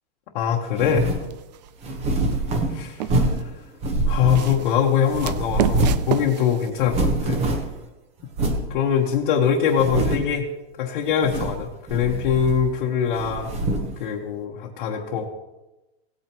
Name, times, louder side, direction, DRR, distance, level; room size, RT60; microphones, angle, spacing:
voice 1, 0.3-1.1 2.7-3.3 4.1-7.4 8.7-10.5 10.8-13.5 14.0-15.3, left 8 dB, 50° left, -2 dB, 1.2 m, -23 dB
sound 1, 0.7-1.3 1.8-3.5 3.8-4.8 5.1-6.1 6.4-6.5 6.7-7.8 8.3-8.7 9.2-9.3 9.7-10.4 11.1-11.6 11.9-12.8 13.1-13.9, right 2 dB, 20° right, 1.1 m, -24 dB
sound 2, 1.2-1.7 2.3-3.5 4.1-6.7, right 11 dB, 45° right, 0.5 m, -30 dB
17.5 x 8.9 x 3.0 m, 1.0 s
supercardioid pair, 165°, 32 cm